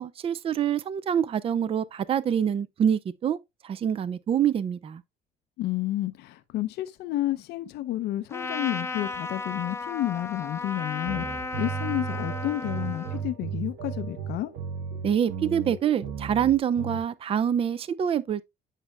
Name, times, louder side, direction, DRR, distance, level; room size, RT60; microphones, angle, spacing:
voice 1, 0.0-3.4 3.6-5.0 15.0-18.4, right 9 dB, 35° right, 0.4 m, -26 dB
voice 2, 5.6-14.5, left 14 dB, 75° left, 0.5 m, -31 dB
Trumpet, 8.3-13.2, left 3 dB, 15° left, 0.5 m, -34 dB
sound 1, 11.1-17.0, right 7 dB, 75° right, 1.2 m, -35 dB
8.2 x 5.4 x 2.2 m
cardioid pair, 110°, 17 cm